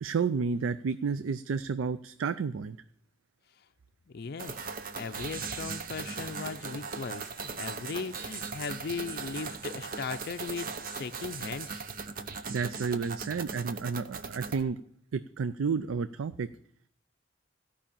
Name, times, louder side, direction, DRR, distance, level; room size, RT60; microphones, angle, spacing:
voice 1, 0.0-2.8 12.5-14.8 15.1-16.5, right 5 dB, 90° right, 13 dB, 0.4 m, -31 dB
voice 2, 4.1-11.8, left 5 dB, 50° left, 9 dB, 0.5 m, -38 dB
sound 1, 4.4-14.6, right 5 dB, 45° right, 0.8 m, -39 dB
15.0 x 5.6 x 8.7 m, 0.68 s
head